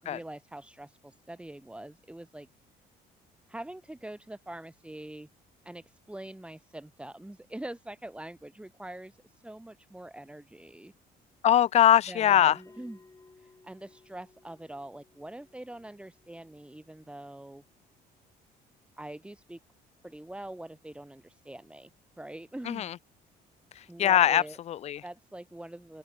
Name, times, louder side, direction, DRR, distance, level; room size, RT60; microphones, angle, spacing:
voice 1, 0.0-2.5 3.5-5.3 5.6-10.9 12.1-13.0 13.4-17.6 19.0-19.6 20.0-21.9 22.2-22.9 23.9-24.6 25.0-26.0, right 1 dB, 5° right, 4.4 m, -44 dB
voice 2, 11.4-12.6 22.7-22.9 24.0-25.0, left 11 dB, 40° left, 0.4 m, -22 dB
Bell, 12.3-17.3, left 3 dB, 20° left, 5.4 m, -58 dB
open air
cardioid pair, 110°, 17 cm